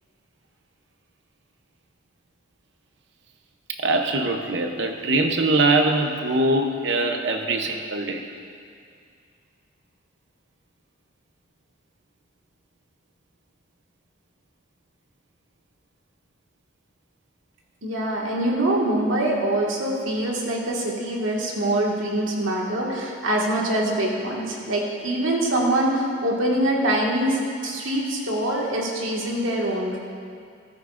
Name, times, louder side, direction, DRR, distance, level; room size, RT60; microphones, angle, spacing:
voice 1, 3.8-8.2, right 2 dB, 60° right, 4 dB, 0.8 m, -22 dB
voice 2, 17.8-30.0, right 1 dB, 80° right, -3 dB, 1.9 m, -24 dB
14.0 x 13.0 x 2.6 m, 2.3 s
head